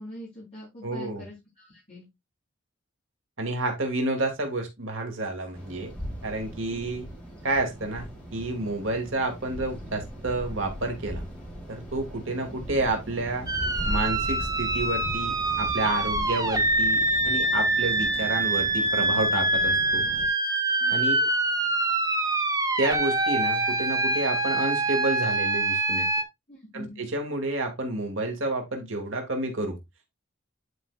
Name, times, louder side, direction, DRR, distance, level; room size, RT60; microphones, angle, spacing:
voice 1, 0.0-2.0 6.7-6.9 20.8-21.3 26.5-27.0, left 1 dB, 35° left, 3.9 m, -44 dB
voice 2, 0.8-1.2 3.4-5.9 6.2-7.0 7.4-8.1 8.3-11.2 11.7-13.5 13.8-20.1 20.9-21.1 22.8-26.1 26.7-29.8, right 2 dB, 85° right, 2.2 m, -29 dB
sound 1, 5.5-20.3, equal, 5° left, 3.4 m, -38 dB
sound 2, 13.5-26.2, right 2 dB, 20° right, 1.1 m, -25 dB
10.5 x 5.0 x 2.4 m
head